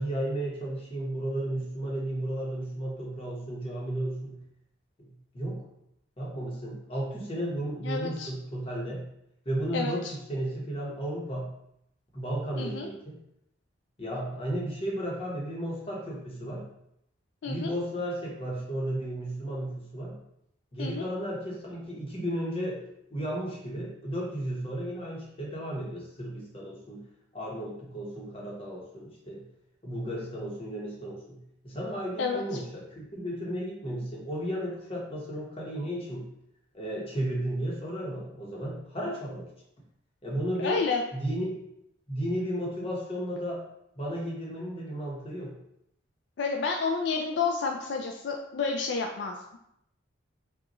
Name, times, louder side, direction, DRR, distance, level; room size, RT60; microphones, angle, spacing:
voice 1, 0.0-4.4 5.0-5.7 6.2-9.1 9.4-11.6 12.1-13.2 14.0-16.6 17.4-20.2 20.7-27.0 27.3-29.5 29.8-36.3 36.7-39.5 40.2-40.8 41.1-41.5 42.1-43.7 43.9-45.6, right 1 dB, 30° left, -3 dB, 1.0 m, -34 dB
voice 2, 7.8-8.3 9.7-9.9 12.6-12.9 17.4-17.7 20.8-21.1 32.2-32.4 40.6-41.0 46.4-49.4, left 4 dB, 60° left, 2 dB, 0.3 m, -30 dB
5.1 x 2.4 x 3.0 m, 0.77 s
head